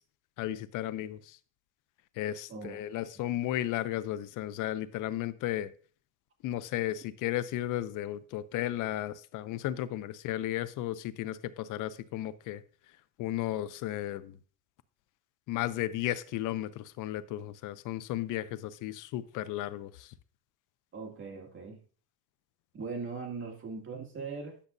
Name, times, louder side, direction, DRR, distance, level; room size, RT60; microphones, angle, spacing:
voice 1, 0.4-1.4 2.2-5.7 6.4-12.6 13.2-14.4 15.5-20.1, left 13 dB, 75° left, 0.6 m, -34 dB
voice 2, 20.9-21.8 22.7-24.6, right 4 dB, 40° right, 2.2 m, -40 dB
10.0 x 7.0 x 2.6 m
cardioid pair, 110°, 31 cm